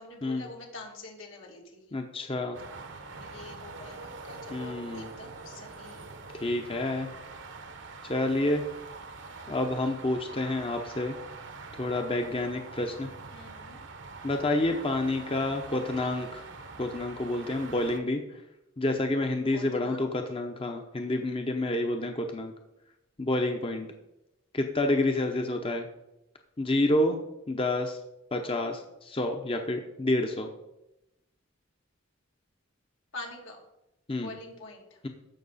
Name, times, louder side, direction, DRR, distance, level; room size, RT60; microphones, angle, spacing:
voice 1, 0.0-1.8 2.6-2.7 3.2-6.1 13.3-13.8 15.7-16.3 19.5-20.0 33.1-33.6 34.2-35.0, left 2 dB, 80° left, -1 dB, 2.5 m, -46 dB
voice 2, 1.9-2.6 4.5-5.1 6.4-7.1 8.0-8.6 9.5-11.1 11.8-13.1 14.2-16.4 16.8-18.2 18.8-22.5 23.2-23.9 24.5-25.9 26.6-27.2 27.5-28.0 28.3-30.5 34.1-34.3, left 2 dB, 30° left, 4 dB, 0.8 m, -29 dB
sound 1, 2.5-18.0, right 4 dB, 65° right, 1.0 m, -44 dB
14.5 x 5.9 x 4.1 m, 0.89 s
head